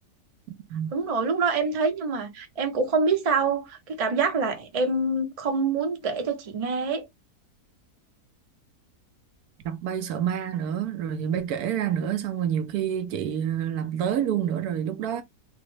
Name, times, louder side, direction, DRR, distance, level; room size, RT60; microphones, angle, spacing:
voice 1, 0.9-7.1, right 4 dB, 45° right, 0.4 m, -26 dB
voice 2, 9.6-15.2, right 9 dB, 75° right, 1.0 m, -28 dB
3.6 x 2.1 x 3.1 m
omnidirectional pair, 1.7 m